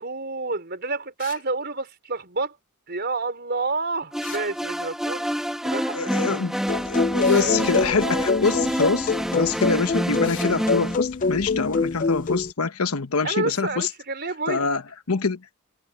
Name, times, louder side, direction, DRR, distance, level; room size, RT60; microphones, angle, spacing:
voice 1, 0.0-2.6 2.9-5.3 5.6-6.4 7.3-8.3 13.2-14.7, right 3 dB, 45° right, 4.4 m, -29 dB
sound 1, 1.2-1.5 4.2-4.5 7.2-7.5 10.2-10.6, left 11 dB, 55° left, 2.9 m, -40 dB
sound 2, 4.1-11.0, equal, ahead, 1.7 m, -27 dB
voice 2, 5.9-13.9 14.5-14.8 15.1-15.4, left 4 dB, 80° left, 1.1 m, -25 dB
sound 3, 6.7-12.5, left 4 dB, 35° left, 0.4 m, -25 dB
head